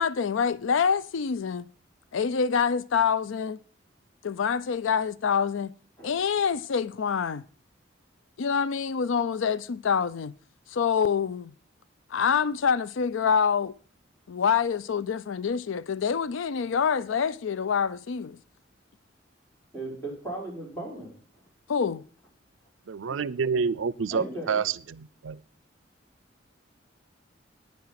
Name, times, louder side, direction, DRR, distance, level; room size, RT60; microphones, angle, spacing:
voice 1, 0.0-1.7 2.1-3.6 4.2-5.7 6.0-7.4 8.4-10.3 10.7-11.5 12.1-13.7 14.3-18.4 21.7-22.0, left 6 dB, 85° left, 0.4 m, -26 dB
voice 2, 19.7-21.1 23.1-23.3 24.1-24.7, right 2 dB, 10° left, 4.9 m, -37 dB
voice 3, 22.9-24.6 24.9-25.4, right 5 dB, 85° right, 0.5 m, -28 dB
10.5 x 9.5 x 5.8 m
head